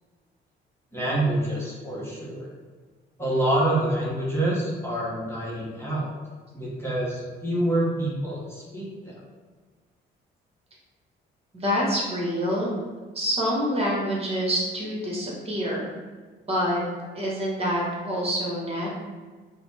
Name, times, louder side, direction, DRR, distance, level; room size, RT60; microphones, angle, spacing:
voice 1, 0.9-2.5 3.2-6.1 6.5-9.2, right 1 dB, 10° left, -6 dB, 1.1 m, -27 dB
voice 2, 11.5-12.7 13.1-15.9 16.5-16.8 17.1-18.9, equal, 30° right, -4 dB, 1.4 m, -26 dB
4.1 x 2.2 x 4.3 m, 1.5 s
cardioid pair, 90°, 20 cm